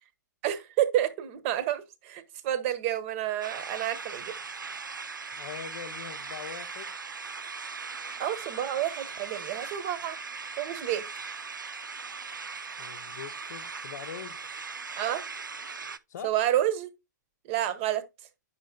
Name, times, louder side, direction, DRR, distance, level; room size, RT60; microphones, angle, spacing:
voice 1, 0.4-4.4 8.2-10.2 10.6-11.0 14.9-15.2 16.2-16.9 17.4-18.0, right 12 dB, 40° right, 0.9 m, -29 dB
sound 1, 3.4-16.0, right 5 dB, 90° right, 0.4 m, -39 dB
voice 2, 5.3-6.9 12.8-14.4 16.1-16.3, left 9 dB, 60° left, 0.6 m, -42 dB
9.2 x 6.0 x 2.2 m
figure-of-eight pair, 115°, 10 cm